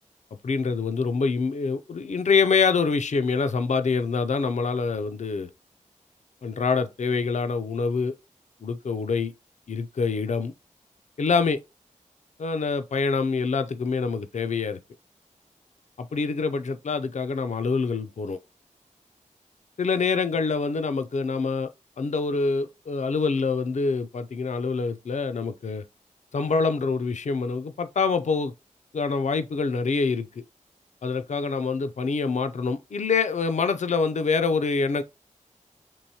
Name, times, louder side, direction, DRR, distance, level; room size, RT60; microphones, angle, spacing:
voice 1, 0.4-5.5 6.4-8.1 8.6-9.3 9.7-10.5 11.2-11.6 12.4-14.8 16.0-18.4 19.8-21.7 22.0-25.8 26.3-28.5 28.9-30.3 31.0-35.0, left 4 dB, 60° left, 0.4 m, -25 dB
4.6 x 3.0 x 2.8 m
wide cardioid pair, 75°, 14 cm